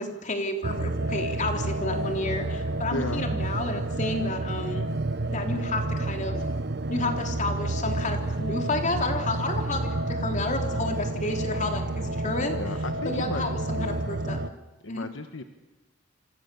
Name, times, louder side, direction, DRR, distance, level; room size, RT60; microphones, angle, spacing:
voice 1, 0.0-4.8 5.3-6.4 6.9-12.6 13.0-14.4 14.9-15.1, left 2 dB, 35° left, 4 dB, 3.6 m, -31 dB
sound 1, 0.6-14.5, right 2 dB, 55° right, 1.0 m, -30 dB
voice 2, 2.9-3.3 12.4-14.1 14.8-15.4, left 2 dB, 65° left, 8 dB, 1.3 m, -35 dB
28.0 x 25.5 x 7.1 m, 1.1 s
head